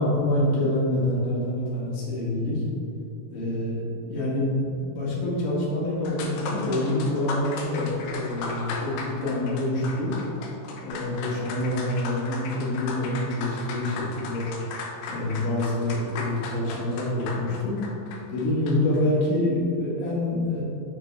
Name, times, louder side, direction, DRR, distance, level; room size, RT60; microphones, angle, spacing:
voice 1, 0.0-2.6 3.3-10.1 10.8-14.5 15.1-17.8 18.3-20.6, left 1 dB, 55° left, -6 dB, 2.5 m, -26 dB
sound 1, 6.1-19.0, left 3 dB, 85° left, 2.3 m, -36 dB
8.7 x 6.6 x 3.4 m, 2.8 s
omnidirectional pair, 5.8 m